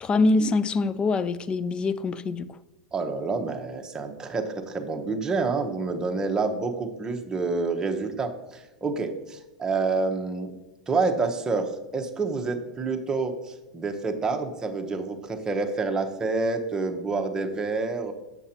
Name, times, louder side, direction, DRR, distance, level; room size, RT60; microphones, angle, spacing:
voice 1, 0.0-2.5, left 3 dB, 25° left, 0.4 m, -24 dB
voice 2, 2.9-10.5 10.9-18.1, right 4 dB, 20° right, 0.9 m, -28 dB
7.1 x 6.8 x 2.9 m
hypercardioid pair, 105°, 4 cm